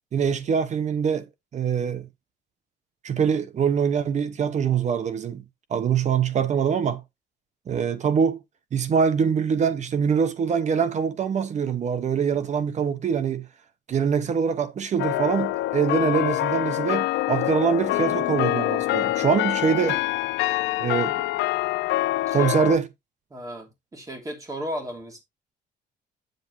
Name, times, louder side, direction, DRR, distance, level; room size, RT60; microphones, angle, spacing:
voice 1, 0.1-1.3 1.5-2.1 3.0-5.4 5.7-7.0 7.7-8.4 8.7-13.4 13.9-20.0 20.8-21.2 22.3-22.9, right 7 dB, 40° right, 1.0 m, -24 dB
sound 1, 15.0-22.8, left 16 dB, 80° left, 0.4 m, -25 dB
voice 2, 23.3-25.2, equal, 20° right, 3.2 m, -35 dB
8.6 x 7.8 x 3.1 m
cardioid pair, 140°, 18 cm